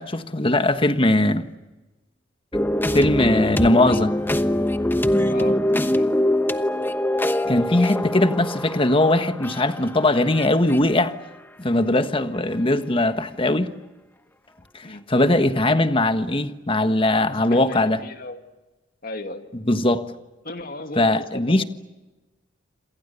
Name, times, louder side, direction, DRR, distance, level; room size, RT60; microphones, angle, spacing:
voice 1, 0.0-1.5 2.9-4.1 7.4-11.1 11.6-13.7 14.7-18.0 19.7-20.0 21.0-21.6, left 1 dB, 25° left, 1.4 m, -20 dB
sound 1, 2.5-10.8, left 1 dB, 10° left, 1.1 m, -23 dB
voice 2, 5.3-6.3 14.8-15.1 17.1-18.4 19.0-19.5 20.4-21.6, left 2 dB, 50° left, 2.3 m, -36 dB
28.0 x 27.0 x 6.9 m
head